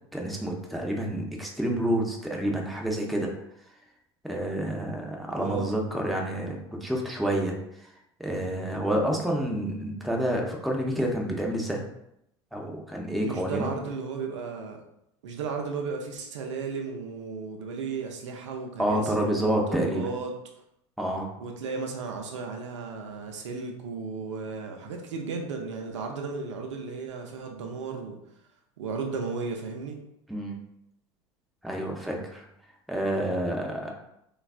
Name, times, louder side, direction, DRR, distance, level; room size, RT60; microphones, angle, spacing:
voice 1, 0.1-3.3 4.2-7.6 8.2-11.8 12.5-13.7 18.8-20.1 21.0-21.3 30.3-30.6 31.6-32.5 32.9-33.9, right 1 dB, ahead, 0 dB, 0.5 m, -28 dB
voice 2, 5.4-5.7 13.2-14.8 15.2-20.3 21.4-28.2 28.8-30.0, right 4 dB, 85° right, 2 dB, 0.5 m, -34 dB
3.2 x 2.3 x 2.3 m, 0.79 s
hypercardioid pair, 90°, 15 cm